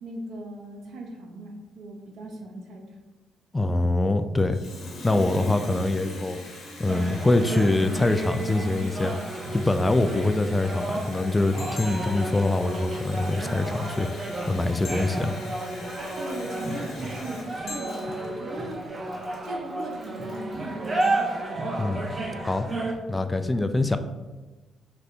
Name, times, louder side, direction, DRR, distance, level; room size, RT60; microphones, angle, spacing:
voice 1, 0.0-2.9 16.2-19.0 19.4-21.9, right 1 dB, 70° right, 2 dB, 0.8 m, -38 dB
voice 2, 3.5-4.6 5.0-6.4 6.8-15.3 21.7-22.1 22.4-22.7 23.1-24.0, left 2 dB, 15° left, 9 dB, 0.3 m, -24 dB
Water tap faucet, 4.4-21.3, left 2 dB, 70° left, 1.0 m, -44 dB
sound 1, 4.5-5.2 7.5-8.9 11.6-13.3 14.8-16.2 17.7-19.0 21.0-22.2, left 2 dB, 55° left, 1.1 m, -46 dB
sound 2, 6.9-22.9, right 2 dB, 35° right, 0.6 m, -32 dB
3.3 x 2.6 x 4.2 m, 1.2 s
cardioid pair, 90°, 0 cm